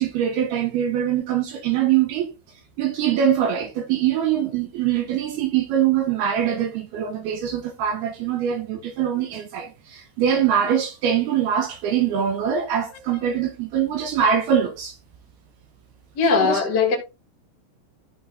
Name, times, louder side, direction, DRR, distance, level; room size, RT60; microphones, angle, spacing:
voice 1, 0.0-2.3 2.8-15.0 16.3-16.6, right 9 dB, 75° right, 2.6 m, -23 dB
voice 2, 16.1-17.0, left 5 dB, 25° left, 3.1 m, -19 dB
14.0 x 4.6 x 3.7 m
omnidirectional pair, 5.4 m